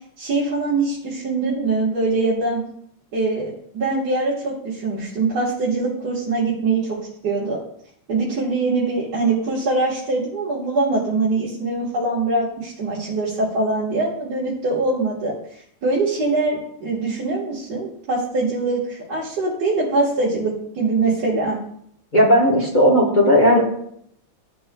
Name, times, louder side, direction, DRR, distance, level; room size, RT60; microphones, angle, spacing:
voice 1, 0.2-2.6 3.1-7.0 7.2-7.6 8.1-21.6, right 3 dB, 50° right, -9 dB, 1.9 m, -23 dB
voice 2, 22.1-23.6, equal, 30° left, -4 dB, 0.9 m, -15 dB
12.5 x 4.3 x 2.2 m, 0.72 s
omnidirectional pair, 2.4 m